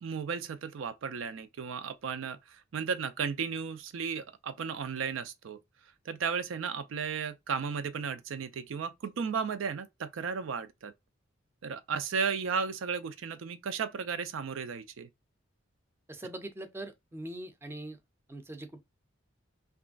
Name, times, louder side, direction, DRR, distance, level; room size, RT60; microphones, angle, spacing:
voice 1, 0.0-5.6 6.1-10.9 11.6-15.1, right 6 dB, 80° right, 0.4 m, -34 dB
voice 2, 16.1-18.0 18.3-18.8, right 1 dB, 10° right, 0.4 m, -42 dB
2.9 x 2.4 x 2.4 m
head